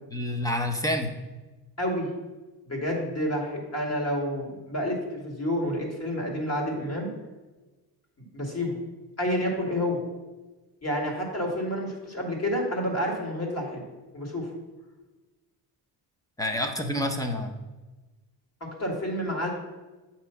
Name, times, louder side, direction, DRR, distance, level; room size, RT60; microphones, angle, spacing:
voice 1, 0.1-1.1 16.4-17.5, left 1 dB, 10° left, 4 dB, 0.7 m, -28 dB
voice 2, 1.8-2.1 2.7-7.1 8.3-8.8 9.2-10.0 10.8-13.8 14.1-14.5 18.6-19.5, equal, 35° left, -1 dB, 1.9 m, -29 dB
8.2 x 3.0 x 5.6 m, 1.2 s
cardioid pair, 110°, 43 cm